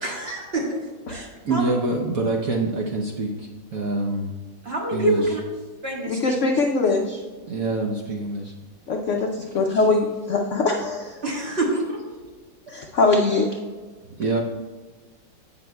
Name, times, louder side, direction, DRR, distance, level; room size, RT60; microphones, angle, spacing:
voice 1, 0.0-0.8 1.1-1.6 4.7-5.4 5.8-6.3 11.2-12.0, right 1 dB, 35° right, -2 dB, 1.6 m, -26 dB
voice 2, 1.4-4.3 4.9-5.3 7.5-8.5 14.2-14.4, right 2 dB, 60° right, 0 dB, 1.0 m, -25 dB
voice 3, 6.1-7.2 8.9-11.2 12.7-13.6, left 3 dB, 70° left, 3 dB, 0.7 m, -22 dB
15.5 x 6.1 x 2.2 m, 1.4 s
omnidirectional pair, 2.0 m